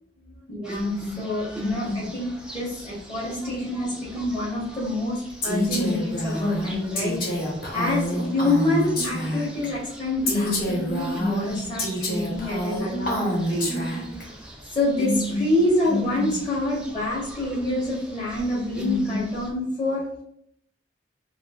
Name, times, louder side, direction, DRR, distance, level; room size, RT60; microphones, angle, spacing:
voice 1, 0.5-7.3 7.7-8.0 8.3-13.7 14.7-20.2, left 1 dB, 20° left, -9 dB, 0.9 m, -27 dB
sound 1, 0.6-19.5, left 1 dB, 5° right, 0.4 m, -33 dB
Female speech woman speaking, 5.4-9.7 10.3-14.2, equal, 55° left, 1.0 m, -27 dB
2.7 x 2.5 x 3.4 m, 0.72 s
head